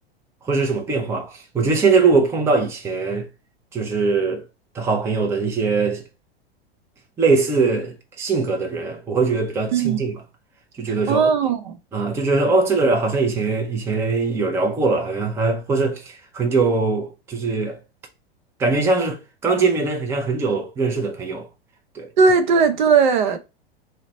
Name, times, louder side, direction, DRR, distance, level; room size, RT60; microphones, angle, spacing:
voice 1, 0.4-3.3 3.7-4.4 4.7-6.0 7.2-10.2 10.8-11.3 11.9-17.8 18.6-21.5 21.9-22.1, right 4 dB, 10° right, 0.5 m, -21 dB
voice 2, 11.1-11.7 22.2-23.4, right 5 dB, 50° right, 0.7 m, -17 dB
4.0 x 2.2 x 3.9 m
figure-of-eight pair, 90°, 31 cm